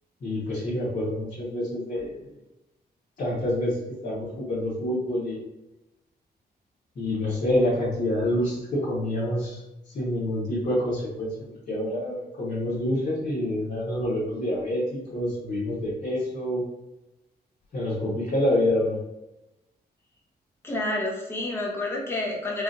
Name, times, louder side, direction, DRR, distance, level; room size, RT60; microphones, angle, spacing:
voice 1, 0.2-2.3 3.2-5.4 6.9-9.6 9.9-16.6 17.7-19.0, left 1 dB, 50° left, -10 dB, 1.3 m, -27 dB
voice 2, 20.6-22.6, left 2 dB, 15° left, -3 dB, 0.9 m, -29 dB
4.8 x 2.6 x 2.6 m, 0.94 s
wide cardioid pair, 170°, 17 cm